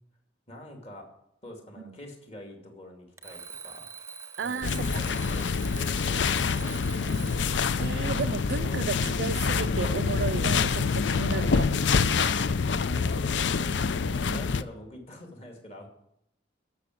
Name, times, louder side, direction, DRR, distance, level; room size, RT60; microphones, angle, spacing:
voice 1, 0.5-1.1 1.4-3.9 4.4-7.2 8.6-9.3 11.3-11.9 12.8-13.7 14.2-15.9, left 1 dB, 35° left, 2.5 m, -46 dB
Alarm, 3.2-7.6, right 5 dB, 15° right, 0.7 m, -44 dB
voice 2, 4.4-5.1 7.8-11.8 12.1-12.4 14.3-14.5, right 5 dB, 65° right, 0.4 m, -34 dB
sound 1, 4.6-14.6, left 5 dB, 75° left, 0.5 m, -26 dB
14.0 x 6.1 x 7.7 m
head